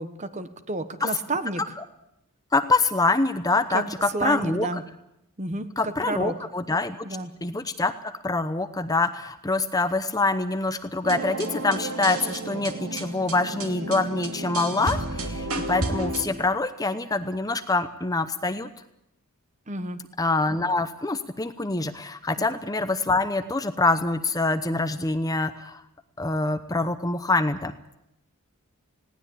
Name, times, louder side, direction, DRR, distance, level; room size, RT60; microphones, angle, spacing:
voice 1, 0.0-1.7 3.7-3.8 4.1-4.8 5.4-6.4 7.0-7.3 19.7-20.0 22.4-22.5, right 2 dB, 35° right, 11 dB, 1.2 m, -30 dB
voice 2, 2.5-4.7 5.8-7.0 7.4-18.7 20.2-25.8 26.2-27.7, left 3 dB, 15° left, 11 dB, 0.8 m, -25 dB
sound 1, 11.0-16.2, right 2 dB, 85° right, 2.8 m, -31 dB
20.0 x 18.0 x 8.5 m, 0.83 s
head